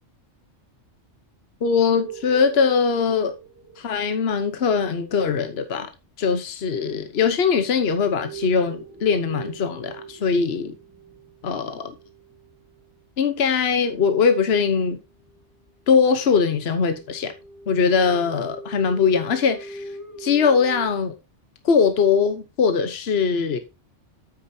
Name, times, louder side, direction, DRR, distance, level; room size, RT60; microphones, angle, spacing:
voice 1, 1.6-3.3 3.8-5.9 6.2-10.7 11.4-11.9 13.2-15.0 15.9-17.3 17.7-19.8 20.2-21.1 21.6-23.6, left 5 dB, 60° left, 1.2 m, -21 dB
sound 1, 2.0-4.4 7.3-12.9 13.7-13.8 14.1-14.3 14.9-15.0 15.2-15.4 15.7-20.8, right 4 dB, 15° right, 1.4 m, -41 dB
9.3 x 8.8 x 2.8 m
omnidirectional pair, 1.2 m